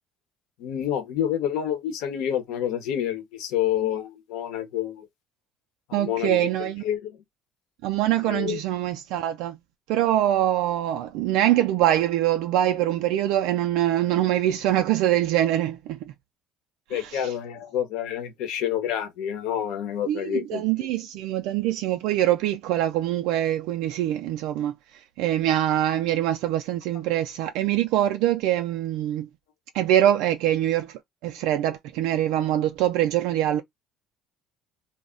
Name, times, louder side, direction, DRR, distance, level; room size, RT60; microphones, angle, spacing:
voice 1, 0.6-5.1 5.9-7.2 8.2-8.6 16.9-20.6, left 10 dB, 75° left, 0.8 m, -28 dB
voice 2, 5.9-6.8 7.8-9.6 9.9-16.0 16.9-17.3 20.1-29.3 29.7-33.6, right 12 dB, 80° right, 0.3 m, -24 dB
2.2 x 2.1 x 3.6 m
supercardioid pair, 85°, 0 cm